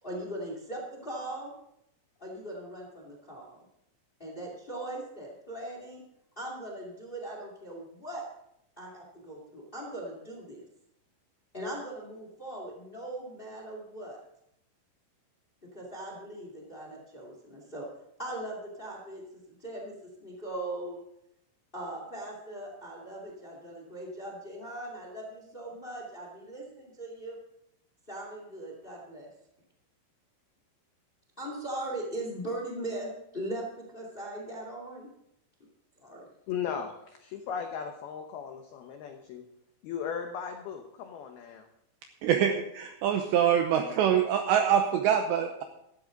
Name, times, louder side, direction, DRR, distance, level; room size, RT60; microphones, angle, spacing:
voice 1, 0.0-1.5 2.2-3.5 4.2-6.0 6.3-8.2 8.8-10.7 11.5-14.2 15.7-17.8 18.2-19.2 19.6-21.0 21.7-27.4 28.1-29.3 31.4-35.1 36.0-36.3, right 1 dB, 60° left, 0 dB, 0.5 m, -39 dB
voice 2, 36.5-39.4 39.8-41.7, left 7 dB, 85° left, 5 dB, 2.1 m, -37 dB
voice 3, 42.2-45.6, right 9 dB, 80° right, 5 dB, 2.6 m, -25 dB
15.0 x 12.5 x 3.9 m, 0.79 s
omnidirectional pair, 5.8 m